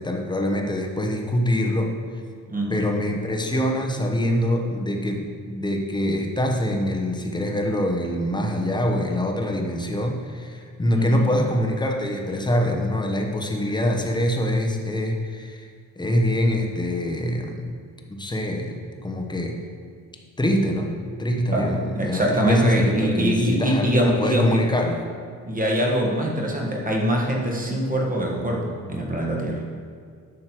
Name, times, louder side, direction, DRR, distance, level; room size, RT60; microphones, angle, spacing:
voice 1, 0.0-1.9 2.7-15.6 16.0-17.8 18.1-19.6 20.4-25.0, equal, 10° left, 2 dB, 1.0 m, -24 dB
voice 2, 2.5-2.9 10.9-11.3 21.5-24.6 25.4-29.6, equal, 25° right, -1 dB, 1.5 m, -23 dB
10.0 x 6.4 x 4.5 m, 2.1 s
cardioid pair, 125°, 35 cm